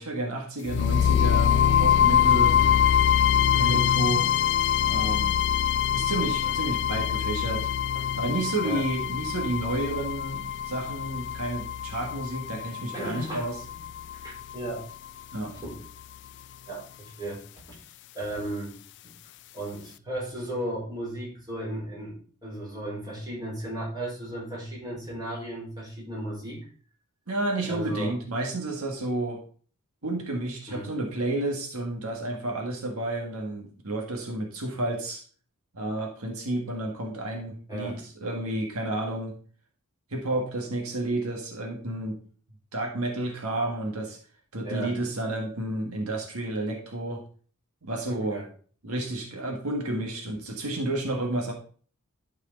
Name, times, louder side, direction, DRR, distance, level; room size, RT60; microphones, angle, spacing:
voice 1, 0.0-2.6 3.6-4.3 4.8-5.4 5.9-7.7 8.1-13.6 15.3-15.5 27.3-29.4 30.0-35.2 35.7-39.3 40.1-42.2 42.7-44.2 44.5-47.2 47.8-48.4 48.8-51.5, right 1 dB, 75° right, 0 dB, 1.6 m, -31 dB
sound 1, 0.7-14.7, left 9 dB, 55° left, 0.3 m, -24 dB
voice 2, 2.4-2.7 3.5-3.8 6.4-6.5 7.9-8.0 8.6-8.8 10.7-10.8 12.9-13.5 14.2-14.8 15.5-15.8 16.7-17.4 17.7-17.8 18.1-18.7 19.0-19.1 19.5-22.2 22.4-26.6 27.7-28.2 30.7-30.9 37.7-38.0 44.6-44.9 48.0-48.4, right 1 dB, 20° right, -4 dB, 4.2 m, -35 dB
12.0 x 4.8 x 3.8 m, 0.43 s
head